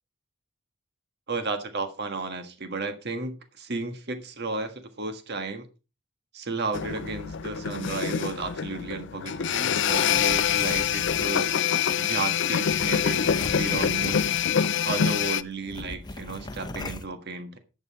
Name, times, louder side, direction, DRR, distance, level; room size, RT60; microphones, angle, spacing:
voice 1, 1.3-5.7 6.3-13.2 13.6-14.2 14.8-17.6, right 3 dB, 55° right, 8 dB, 1.5 m, -33 dB
sound 1, 6.7-15.4, left 8 dB, 60° left, 0.5 m, -25 dB
sound 2, 10.0-11.9 12.7-14.8 15.1-15.2 15.6-17.1, left 2 dB, 20° left, 1.0 m, -38 dB
11.0 x 8.2 x 4.2 m, 0.30 s
head